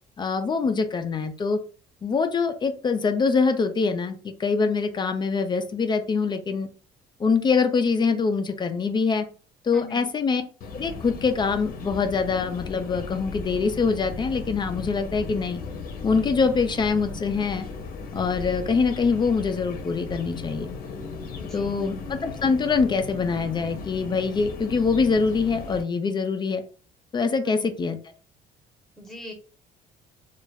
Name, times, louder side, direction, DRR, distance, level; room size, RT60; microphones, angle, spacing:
voice 1, 0.2-1.6 2.0-6.7 7.2-9.3 9.6-10.4 10.7-15.6 16.0-17.6 18.1-20.7 21.5-26.6 27.1-28.0, left 5 dB, 25° left, 7 dB, 0.4 m, -24 dB
voice 2, 9.7-10.1 21.4-22.1 27.4-27.7 29.0-29.3, equal, ahead, 0 dB, 0.8 m, -41 dB
sound 1, 10.6-25.8, left 4 dB, 60° left, 0.6 m, -36 dB
2.3 x 2.0 x 3.3 m, 0.39 s
cardioid pair, 110°, 17 cm